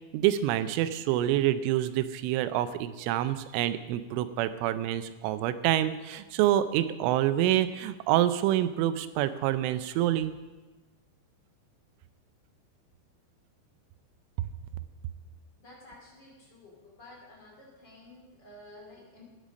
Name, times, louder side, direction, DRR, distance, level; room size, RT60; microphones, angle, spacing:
voice 1, 0.1-10.3, right 12 dB, 85° right, 12 dB, 3.2 m, -27 dB
voice 2, 15.6-19.2, left 1 dB, 30° left, -3 dB, 2.3 m, -52 dB
13.5 x 9.8 x 5.1 m, 1.2 s
omnidirectional pair, 5.5 m